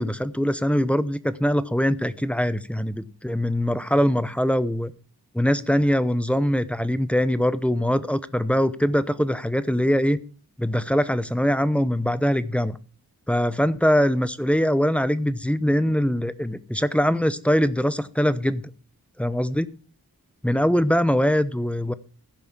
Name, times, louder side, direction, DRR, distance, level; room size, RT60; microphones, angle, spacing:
voice 1, 0.0-4.9 5.3-10.2 10.6-12.8 13.3-18.7 19.2-19.7 20.4-21.9, equal, 5° left, 14 dB, 0.9 m, -22 dB
15.0 x 5.4 x 7.4 m, 0.38 s
cardioid pair, 50°, 37 cm